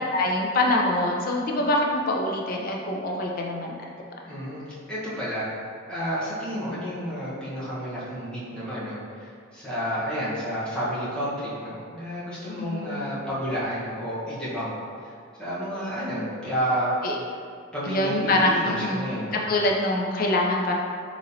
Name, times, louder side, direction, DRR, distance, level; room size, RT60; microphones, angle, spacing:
voice 1, 0.1-3.8 12.5-13.0 17.0-17.2 17.9-19.0 19.3-20.7, left 1 dB, 45° left, 0 dB, 0.4 m, -24 dB
voice 2, 4.3-4.6 4.9-5.5 5.9-14.7 15.0-15.1 15.4-16.9 17.7-19.6, equal, 5° left, -11 dB, 0.9 m, -30 dB
3.9 x 3.0 x 2.6 m, 2.2 s
head